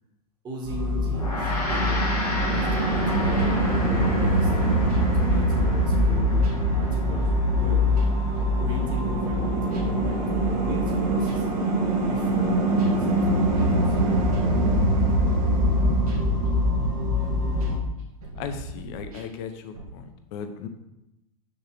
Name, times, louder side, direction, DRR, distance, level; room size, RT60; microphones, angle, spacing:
voice 1, 0.4-4.8 5.1-8.0 8.3-10.2 10.5-11.6 12.0-13.2 13.6-14.1 14.4-14.7, equal, 25° right, -4 dB, 1.8 m, -37 dB
sound 1, 0.6-17.8, equal, 40° right, 1.5 m, -23 dB
Gong, 1.1-10.7, left 2 dB, 85° left, 2.3 m, -35 dB
sound 2, 3.4-6.7 7.0-19.9, right 1 dB, 70° right, 1.9 m, -40 dB
voice 2, 18.3-20.7, left 6 dB, 45° left, 8 dB, 0.8 m, -36 dB
6.1 x 5.7 x 3.5 m, 0.91 s
figure-of-eight pair, 105°, 19 cm